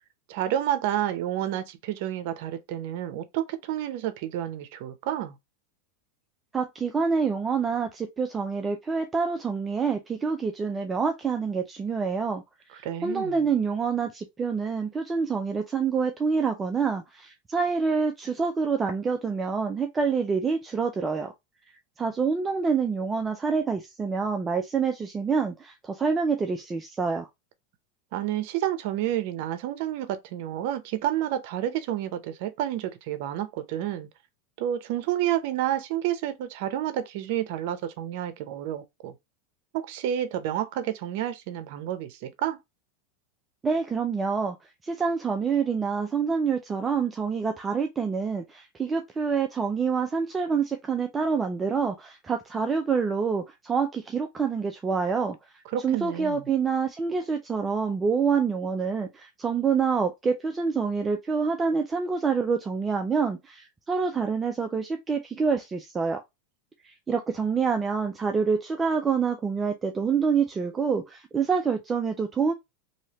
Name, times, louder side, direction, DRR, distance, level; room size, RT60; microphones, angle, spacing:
voice 1, 0.3-5.4 12.8-13.4 28.1-34.1 34.6-39.1 39.7-42.6 55.7-56.5, right 11 dB, 60° right, 0.6 m, -30 dB
voice 2, 6.5-12.4 12.7-21.3 22.0-27.3 43.6-44.6 44.8-55.4 55.8-66.2 66.8-72.5, right 5 dB, 15° right, 0.4 m, -27 dB
3.2 x 2.8 x 2.8 m
supercardioid pair, 150°, 0 cm